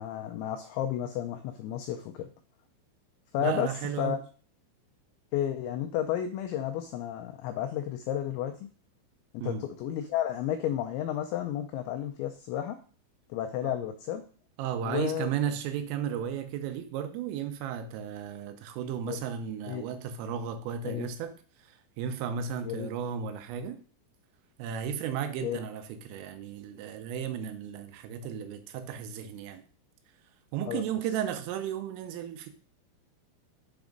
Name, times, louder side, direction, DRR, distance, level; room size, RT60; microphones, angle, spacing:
voice 1, 0.0-2.3 3.3-4.2 5.3-8.7 9.3-12.8 13.3-14.3 14.8-15.3 19.1-19.2 19.7-19.9 20.8-21.1 22.6-22.9 25.4-25.6 30.7-30.8, left 11 dB, 90° left, 2.6 m, -32 dB
voice 2, 3.4-4.2 9.4-9.6 13.6-13.8 14.6-21.3 21.6-23.8 24.6-29.6 30.5-32.5, right 8 dB, 85° right, 3.3 m, -34 dB
7.5 x 3.5 x 5.0 m
omnidirectional pair, 5.8 m